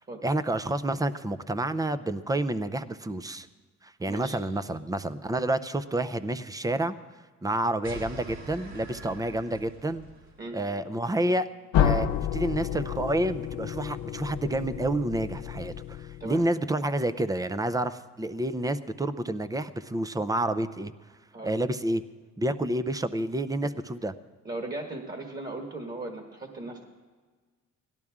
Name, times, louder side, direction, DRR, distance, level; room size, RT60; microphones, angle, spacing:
voice 1, 0.2-3.5 3.8-6.9 7.4-10.0 10.5-11.5 11.8-20.9 21.4-22.0 22.4-24.1, right 1 dB, 10° right, 12 dB, 0.5 m, -29 dB
voice 2, 4.1-4.4 10.4-10.6 16.2-16.4 21.3-21.6 23.6-23.7 24.4-26.9, right 2 dB, 30° right, 3 dB, 1.6 m, -37 dB
sound 1, 7.8-10.4, right 2 dB, 65° right, 3.0 m, -44 dB
sound 2, 11.7-16.5, left 9 dB, 80° left, 0.7 m, -30 dB
17.5 x 12.0 x 3.6 m, 1.5 s
cardioid pair, 90°, 30 cm